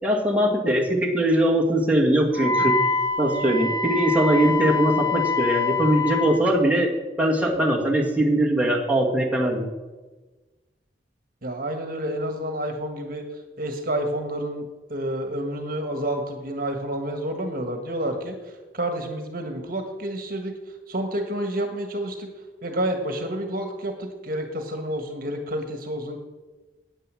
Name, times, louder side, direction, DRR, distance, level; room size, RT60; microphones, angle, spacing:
voice 1, 0.0-2.8 3.2-6.9 7.2-9.7, right 1 dB, 10° right, -2 dB, 1.9 m, -21 dB
Wind instrument woodwind instrument, 2.3-6.4, left 4 dB, 25° left, 1.0 m, -25 dB
voice 2, 11.4-13.2 13.6-14.6 14.9-18.3 18.7-20.5 20.9-22.3 22.6-26.2, right 1 dB, 55° right, 5 dB, 1.5 m, -29 dB
9.5 x 9.1 x 7.5 m, 1.2 s
head